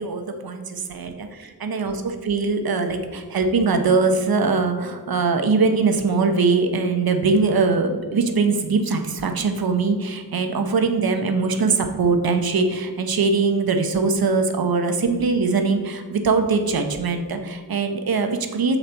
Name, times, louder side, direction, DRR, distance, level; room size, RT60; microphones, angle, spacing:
voice 1, 0.0-18.8, right 4 dB, 65° right, 6 dB, 0.8 m, -22 dB
7.2 x 4.0 x 4.4 m, 1.5 s
wide cardioid pair, 95°, 39 cm